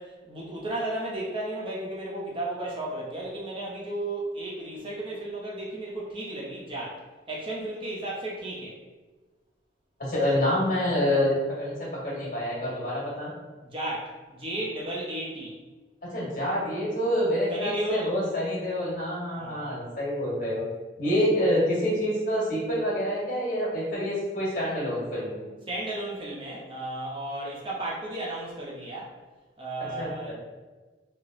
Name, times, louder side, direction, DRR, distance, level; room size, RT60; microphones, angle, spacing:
voice 1, 0.0-7.0 7.3-8.8 13.6-15.5 17.5-18.1 19.3-19.7 25.7-29.1 29.6-30.3, right 1 dB, 30° right, -4 dB, 0.5 m, -34 dB
voice 2, 10.0-13.3 16.1-20.6 21.0-25.5 30.0-30.3, equal, 50° left, -6 dB, 1.3 m, -27 dB
3.1 x 2.8 x 2.5 m, 1.3 s
head